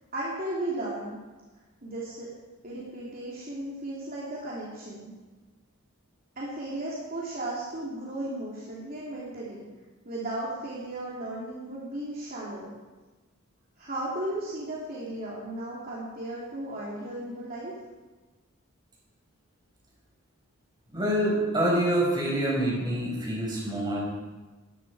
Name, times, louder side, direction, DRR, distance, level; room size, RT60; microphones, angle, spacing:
voice 1, 0.1-1.2 1.8-2.3 2.6-5.1 6.4-9.7 10.0-12.7 13.8-17.7, right 1 dB, 40° right, -6 dB, 3.0 m, -35 dB
voice 2, 20.9-24.0, right 1 dB, 20° right, -3 dB, 5.7 m, -26 dB
18.0 x 14.5 x 4.9 m, 1.2 s
head